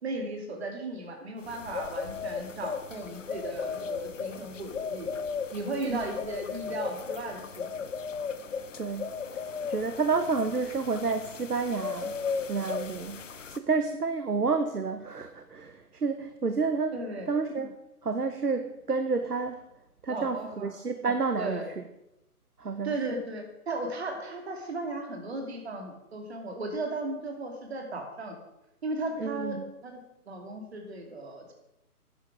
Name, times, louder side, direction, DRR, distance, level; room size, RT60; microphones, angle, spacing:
voice 1, 0.0-5.1 5.5-7.7 16.9-17.3 20.1-20.7 21.4-21.7 22.8-28.3 28.8-30.0 30.3-31.5, right 2 dB, 45° right, 4 dB, 2.6 m, -36 dB
sound 1, 1.4-13.6, left 5 dB, 55° left, 0.8 m, -36 dB
voice 2, 8.8-9.1 9.7-12.1 12.5-16.9 17.3-17.7 18.0-19.6 20.0-21.6 22.6-23.2 29.2-29.7, right 4 dB, 80° right, 8 dB, 1.1 m, -30 dB
12.0 x 9.8 x 4.9 m, 0.89 s
figure-of-eight pair, 140°, 45 cm